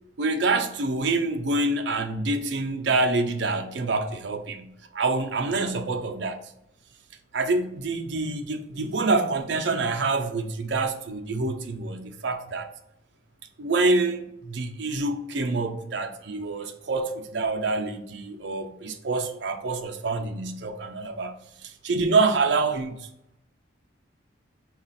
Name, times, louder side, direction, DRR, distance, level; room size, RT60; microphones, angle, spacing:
voice 1, 0.2-6.4 7.3-12.7 13.6-21.3 21.8-23.0, right 3 dB, 65° right, 0.5 m, -26 dB
4.9 x 2.4 x 4.0 m
head